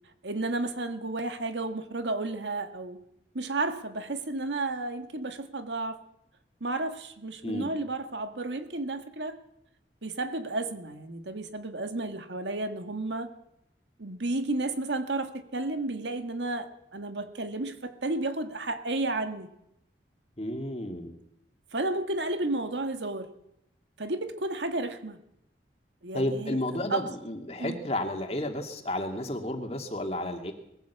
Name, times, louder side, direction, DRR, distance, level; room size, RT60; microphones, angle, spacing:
voice 1, 0.2-3.0 3.3-6.0 6.6-9.4 10.0-13.3 14.0-19.5 21.7-23.3 24.0-25.2 26.0-26.6 26.9-27.1 27.6-27.8, right 2 dB, 85° right, 1.8 m, -32 dB
voice 2, 20.4-21.2 26.1-30.5, left 1 dB, 35° left, 2.2 m, -32 dB
21.0 x 15.5 x 8.2 m
head